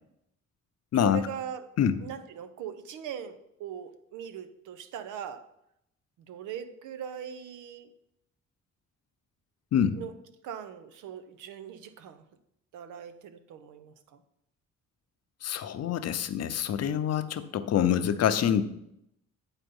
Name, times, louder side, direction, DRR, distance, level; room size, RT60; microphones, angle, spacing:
voice 1, 0.9-1.7 2.0-5.5 6.3-7.9 9.9-10.1 10.4-12.2 12.7-14.2, right 9 dB, 85° right, 11 dB, 0.7 m, -40 dB
voice 2, 15.4-18.6, left 9 dB, 55° left, 10 dB, 0.7 m, -26 dB
8.9 x 4.1 x 5.3 m, 0.79 s
cardioid pair, 90°, 30 cm